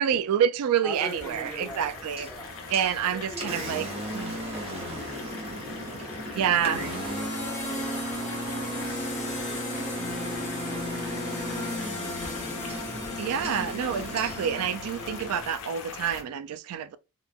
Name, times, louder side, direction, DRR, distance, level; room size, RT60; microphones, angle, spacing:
voice 1, 0.0-2.3 2.7-3.9 4.1-4.4 6.3-6.8 13.2-17.0, right 8 dB, 70° right, 0.3 m, -27 dB
voice 2, 0.8-2.6 3.0-5.1 5.7-6.3 7.6-8.5 8.9-10.3 12.2-12.6, right 1 dB, 5° left, 0.9 m, -45 dB
sound 1, 0.9-16.2, left 5 dB, 65° left, 0.6 m, -42 dB
Engine, 1.3-15.3, right 1 dB, 25° right, 0.7 m, -36 dB
sound 2, 2.4-15.4, left 2 dB, 35° left, 0.8 m, -38 dB
2.9 x 2.1 x 2.3 m
head